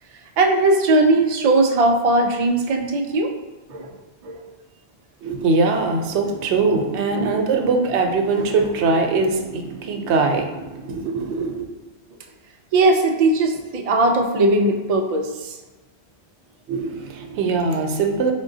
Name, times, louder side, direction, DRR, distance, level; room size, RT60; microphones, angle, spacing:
voice 1, 0.4-3.3 3.7-4.0 4.2-4.4 6.6-6.8 7.1-7.4 8.4-8.5 12.7-15.6, right 2 dB, 60° right, 3 dB, 0.4 m, -19 dB
voice 2, 5.2-11.7 16.7-18.3, right 3 dB, 80° right, 3 dB, 0.9 m, -22 dB
3.6 x 3.6 x 2.7 m, 1.2 s
omnidirectional pair, 1.2 m